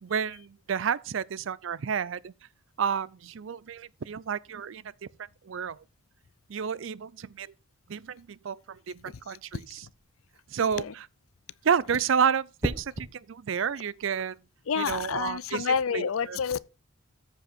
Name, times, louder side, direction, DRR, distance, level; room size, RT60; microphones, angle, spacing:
voice 1, 0.0-2.3 2.8-4.8 5.2-5.8 6.5-7.5 7.9-9.6 10.5-10.8 11.6-14.4 14.8-16.4, right 7 dB, 70° right, 0.4 m, -30 dB
sound 1, 9.8-10.1 12.6-13.1 15.1-15.4, equal, 15° right, 0.9 m, -34 dB
voice 2, 10.6-10.9 14.7-16.6, left 6 dB, 85° left, 0.5 m, -29 dB
14.0 x 5.3 x 4.3 m
head